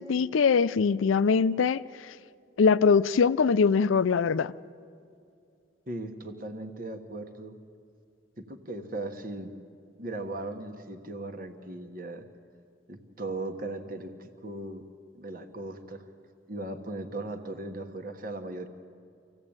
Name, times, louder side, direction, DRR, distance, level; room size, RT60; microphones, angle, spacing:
voice 1, 0.0-2.1 2.6-4.5, left 5 dB, 85° left, 16 dB, 0.4 m, -23 dB
voice 2, 5.9-7.6 8.4-9.5 10.0-12.2 12.9-14.8 15.1-16.1 16.5-18.7, right 2 dB, 45° right, 6 dB, 1.3 m, -38 dB
25.5 x 16.0 x 8.8 m, 2.4 s
head